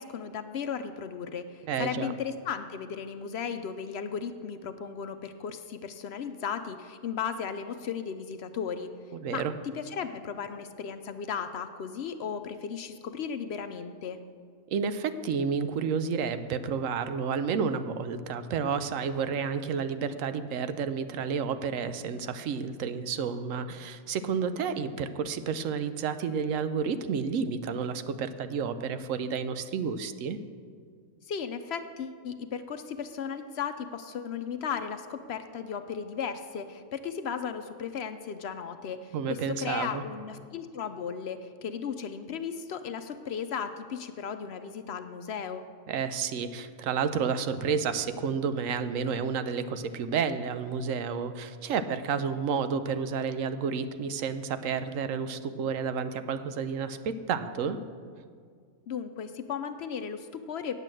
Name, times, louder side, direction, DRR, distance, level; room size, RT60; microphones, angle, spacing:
voice 1, 0.0-8.9 9.3-9.4 9.7-14.2 31.3-45.6 58.9-60.8, left 7 dB, 65° left, 9 dB, 0.7 m, -35 dB
voice 2, 1.7-2.1 9.1-9.5 14.7-30.4 39.1-40.0 45.9-57.8, right 6 dB, 80° right, 11 dB, 1.0 m, -30 dB
9.0 x 8.2 x 7.6 m, 2.1 s
omnidirectional pair, 1.4 m